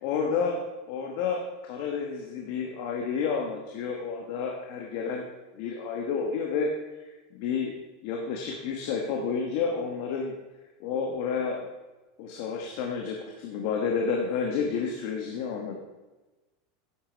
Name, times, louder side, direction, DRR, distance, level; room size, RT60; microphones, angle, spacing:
voice 1, 0.0-5.2 5.5-6.7 7.3-7.7 8.0-10.3 10.8-11.7 12.2-15.8, left 5 dB, 45° left, 1 dB, 1.2 m, -30 dB
10.5 x 7.8 x 5.1 m, 1.2 s
supercardioid pair, 175°, 0 cm